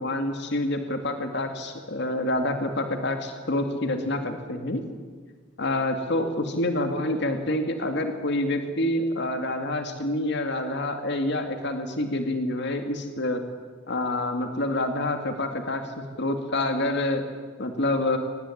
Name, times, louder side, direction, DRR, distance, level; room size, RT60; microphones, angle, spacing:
voice 1, 0.0-4.8 5.6-13.4 13.9-17.2 17.6-18.2, left 1 dB, 65° left, 6 dB, 2.3 m, -27 dB
23.5 x 19.0 x 9.9 m, 1.5 s
head